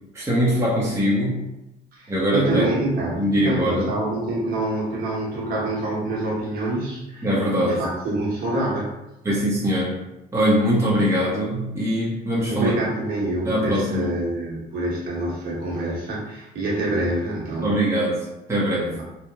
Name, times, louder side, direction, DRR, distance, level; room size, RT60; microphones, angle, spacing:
voice 1, 0.1-1.5 2.1-2.8 3.2-3.9 7.2-7.8 9.2-10.1 10.3-12.7 13.4-14.1 17.6-19.0, equal, 15° right, -5 dB, 0.7 m, -22 dB
voice 2, 1.9-7.3 7.6-8.9 10.9-11.1 12.5-17.7, right 1 dB, 65° right, -5 dB, 1.0 m, -26 dB
2.8 x 2.1 x 2.3 m, 0.90 s
cardioid pair, 110°, 17 cm